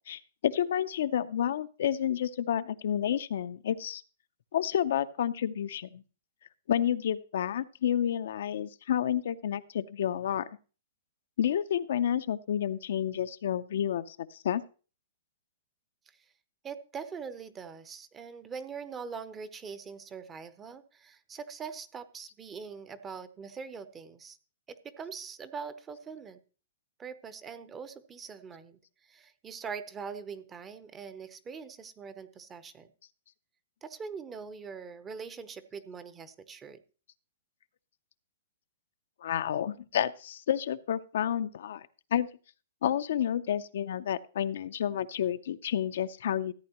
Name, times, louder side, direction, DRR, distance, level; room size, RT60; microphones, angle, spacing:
voice 1, 0.1-4.0 4.5-6.0 6.7-10.5 11.4-14.6 39.2-42.3 42.8-46.5, left 10 dB, 65° left, 12 dB, 0.5 m, -30 dB
voice 2, 16.6-24.4 24.7-26.4 27.0-32.9 33.8-36.8, right 6 dB, 15° right, 13 dB, 0.7 m, -42 dB
14.5 x 8.6 x 2.9 m, 0.36 s
hypercardioid pair, 150°, 0 cm